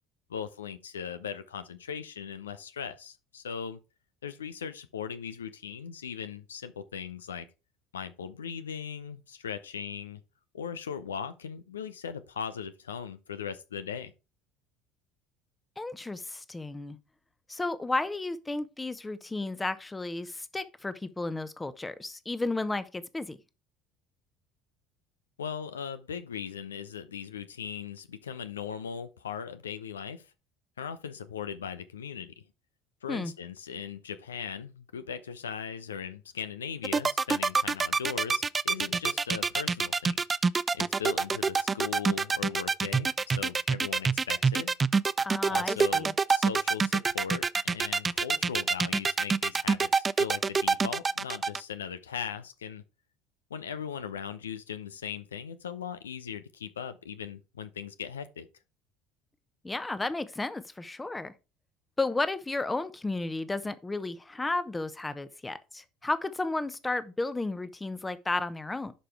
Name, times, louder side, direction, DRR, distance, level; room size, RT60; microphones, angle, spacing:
voice 1, 0.3-3.8 4.2-7.5 7.9-10.2 10.5-14.1 25.4-30.3 30.8-32.4 33.0-40.2 40.7-44.7 45.5-52.8 53.5-58.5, left 7 dB, 75° left, 0.5 m, -39 dB
voice 2, 15.8-17.0 17.5-23.4 33.1-33.3 45.2-46.1 59.6-61.3 62.0-68.9, left 2 dB, 15° left, 0.9 m, -33 dB
sound 1, 36.8-51.6, right 4 dB, 25° right, 0.3 m, -26 dB
11.0 x 5.1 x 3.4 m
figure-of-eight pair, 65°, 0 cm